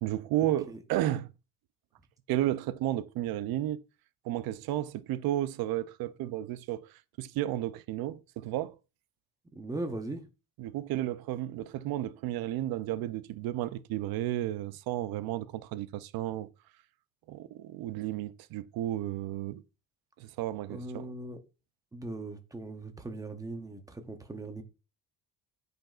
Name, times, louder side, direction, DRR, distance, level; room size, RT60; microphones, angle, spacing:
voice 1, 0.0-1.3 2.3-3.8 4.2-8.7 10.6-16.5 17.3-19.6 20.2-21.1, right 13 dB, 75° right, 0.6 m, -33 dB
voice 2, 9.5-10.3 20.7-21.4 21.9-24.6, right 2 dB, 10° right, 0.7 m, -39 dB
8.8 x 5.1 x 2.4 m
cardioid pair, 170°, 36 cm